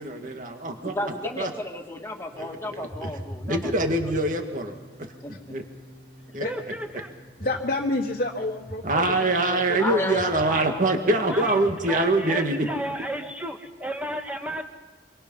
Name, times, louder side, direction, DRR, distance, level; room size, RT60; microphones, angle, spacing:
voice 1, 0.0-1.5 2.4-3.1 3.5-5.6 6.3-6.5 8.8-12.7, right 2 dB, 50° right, 5 dB, 2.0 m, -25 dB
voice 2, 0.8-3.7 5.2-5.3 9.8-11.4 12.7-12.8, left 1 dB, 15° left, 1 dB, 2.3 m, -33 dB
sound 1, 2.3-11.7, equal, 80° right, 6.1 m, -43 dB
voice 3, 6.4-7.1 11.3-11.6 11.9-14.6, equal, 10° right, 4 dB, 1.8 m, -33 dB
voice 4, 7.4-10.1, left 2 dB, 50° left, -2 dB, 1.5 m, -29 dB
25.0 x 24.5 x 5.6 m, 1.2 s
head